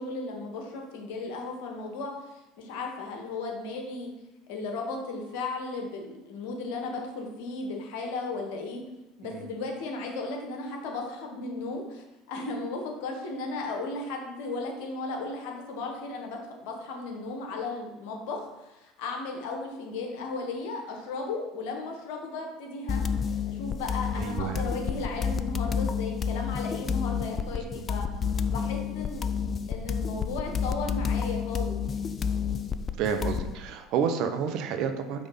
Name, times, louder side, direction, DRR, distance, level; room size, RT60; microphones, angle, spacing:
voice 1, 0.0-4.1 4.5-8.8 9.2-23.0 23.5-28.1 28.5-29.3 29.7-32.0, left 3 dB, 70° left, 1 dB, 1.2 m, -35 dB
sound 1, 22.9-33.5, left 6 dB, 35° left, 0.4 m, -30 dB
voice 2, 24.2-24.7 27.5-27.6 33.0-35.3, right 7 dB, 60° right, 7 dB, 0.7 m, -30 dB
5.0 x 3.4 x 5.4 m, 0.99 s
hypercardioid pair, 70°, 0 cm